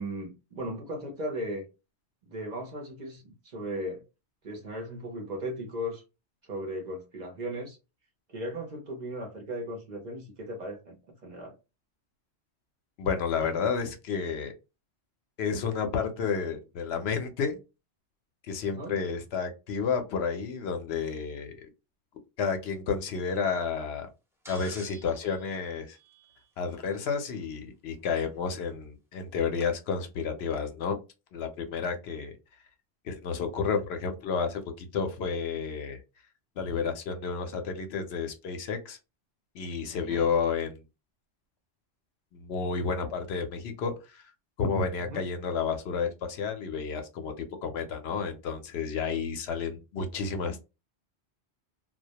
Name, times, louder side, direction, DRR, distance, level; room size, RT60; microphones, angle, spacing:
voice 1, 0.0-1.7 2.3-4.0 4.4-6.0 6.5-7.8 8.3-11.5 18.6-18.9 40.1-40.3 45.0-45.2, equal, 50° right, 0.7 m, -37 dB
voice 2, 13.0-14.5 15.4-17.6 18.5-21.5 22.4-24.1 24.5-26.0 26.6-31.0 31.3-32.3 33.0-36.0 36.6-39.0 39.5-40.8 42.3-44.2 44.6-50.6, left 5 dB, 70° left, 0.8 m, -31 dB
sound 1, 24.4-26.8 28.3-28.4 29.6-29.7, right 1 dB, 5° right, 0.5 m, -50 dB
2.2 x 2.1 x 2.7 m
omnidirectional pair, 1.1 m